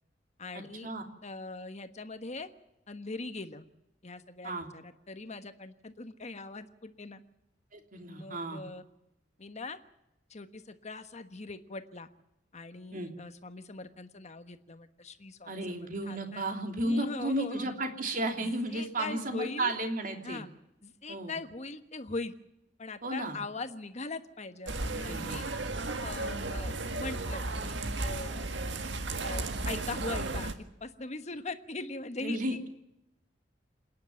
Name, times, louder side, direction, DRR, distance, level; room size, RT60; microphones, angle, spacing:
voice 1, 0.4-0.9 1.2-2.5 2.9-3.6 4.0-7.2 8.1-8.8 9.4-9.8 10.3-12.1 12.5-16.5 16.8-17.7 18.4-19.7 20.2-20.5 20.8-22.3 22.8-25.4 26.0-28.5 29.2-30.5 30.8-32.4, left 3 dB, 40° left, 9 dB, 1.3 m, -41 dB
voice 2, 7.7-8.6 12.9-13.1 15.5-20.4 21.1-21.3 23.0-23.4 25.0-25.4 32.2-32.7, right 1 dB, 50° right, 4 dB, 3.1 m, -33 dB
sound 1, 24.7-30.5, right 2 dB, 90° right, 1.7 m, -34 dB
27.5 x 10.5 x 9.2 m, 0.86 s
head